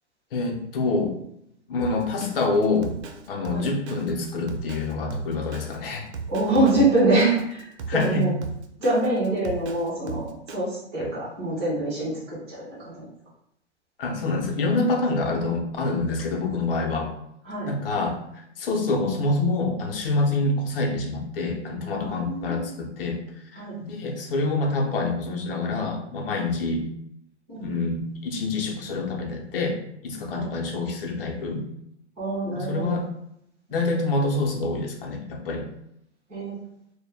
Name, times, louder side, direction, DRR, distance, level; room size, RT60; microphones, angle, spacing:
voice 1, 0.3-1.2 1.7-2.9 3.3-6.1 7.9-8.3 11.0-11.1 14.0-17.1 17.7-23.2 23.5-26.9 27.6-29.8 30.0-31.7 32.5-33.0 33.7-35.6, left 3 dB, 50° left, 1 dB, 0.6 m, -26 dB
Drum kit, 1.8-10.6, right 5 dB, 65° right, 0.5 m, -37 dB
voice 2, 6.3-8.3 8.8-13.0 17.4-17.7 22.0-22.7 23.5-23.8 27.5-27.8 30.3-30.5 32.2-32.9 36.3-36.6, right 2 dB, 5° right, -10 dB, 0.3 m, -25 dB
2.1 x 2.1 x 3.3 m, 0.76 s
hypercardioid pair, 145°, 36 cm